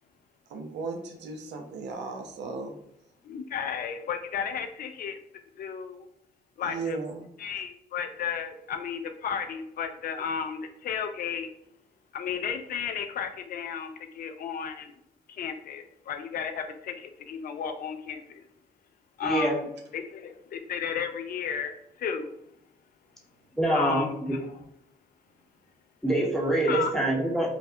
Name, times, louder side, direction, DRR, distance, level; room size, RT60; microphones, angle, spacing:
voice 1, 0.5-2.8 6.6-7.3, right 4 dB, 65° right, 3 dB, 0.5 m, -36 dB
voice 2, 3.2-5.2 5.6-6.1 6.6-7.0 7.4-11.5 12.1-14.9 15.3-18.5 19.2-22.3 23.7-24.5 26.7-26.9, left 7 dB, 50° left, 7 dB, 0.4 m, -33 dB
voice 3, 19.2-19.6 23.6-24.4 26.0-27.5, right 1 dB, ahead, -3 dB, 0.8 m, -25 dB
2.3 x 2.0 x 2.6 m, 0.74 s
hypercardioid pair, 45°, 19 cm